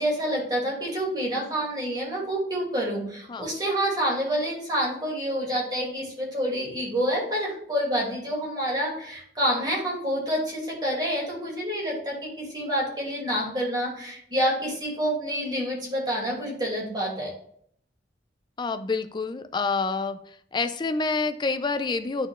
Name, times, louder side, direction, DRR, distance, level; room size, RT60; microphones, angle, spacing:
voice 1, 0.0-17.3, equal, 25° right, -4 dB, 2.4 m, -28 dB
voice 2, 18.6-20.2 20.5-22.3, left 4 dB, 25° left, 9 dB, 0.4 m, -27 dB
9.9 x 4.3 x 2.4 m, 0.65 s
head